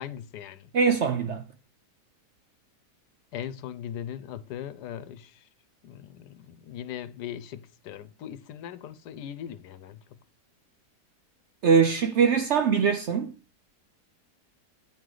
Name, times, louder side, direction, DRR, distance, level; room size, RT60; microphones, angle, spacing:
voice 1, 0.0-0.7 3.3-5.5 5.8-10.0, left 10 dB, 80° left, 1.2 m, -39 dB
voice 2, 0.7-1.4 11.6-13.3, right 6 dB, 65° right, 0.7 m, -22 dB
9.2 x 4.8 x 3.8 m
omnidirectional pair, 1.7 m